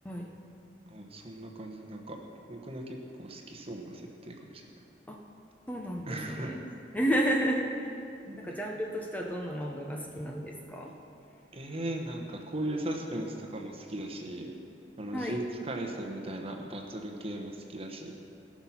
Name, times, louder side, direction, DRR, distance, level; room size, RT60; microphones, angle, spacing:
voice 1, 0.9-2.2 2.5-4.7 6.1-6.6 8.3-8.5 11.5-14.5 15.0-18.3, right 1 dB, 35° right, 2 dB, 1.1 m, -38 dB
voice 2, 5.7-6.6 6.9-7.9 8.4-10.9 15.1-15.4, equal, 10° left, 0 dB, 0.8 m, -31 dB
18.0 x 6.1 x 5.8 m, 2.6 s
head